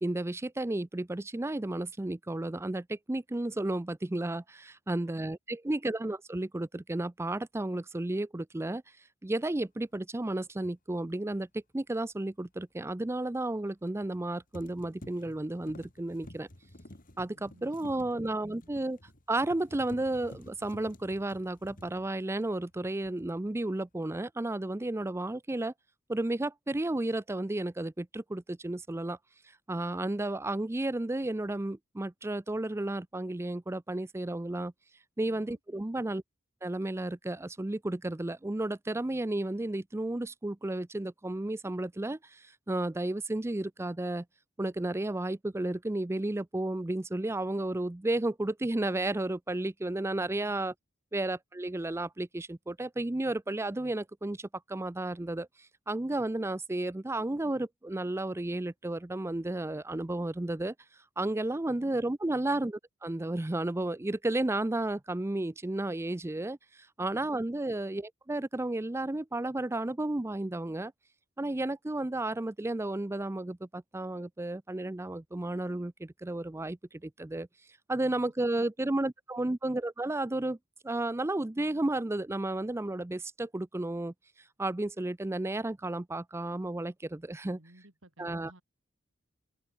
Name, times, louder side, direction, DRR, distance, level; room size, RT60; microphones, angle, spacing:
voice 1, 0.0-8.8 9.2-16.5 17.2-19.0 19.3-25.7 26.1-29.2 29.7-34.7 35.2-36.2 36.6-44.2 44.6-50.7 51.1-55.5 55.9-60.7 61.2-66.6 67.0-70.9 71.4-77.5 77.9-80.6 80.8-84.1 84.6-87.6 88.2-88.5, right 2 dB, 15° right, 0.5 m, -33 dB
voice 2, 4.9-5.4 17.3-18.3 35.2-35.6 61.7-62.0 67.0-67.3 78.0-79.0 87.5-88.6, right 1 dB, 65° right, 3.7 m, -58 dB
sound 1, 10.6-10.7 13.9-14.2 14.5-22.7 23.0-23.5, left 1 dB, 40° left, 3.4 m, -51 dB
head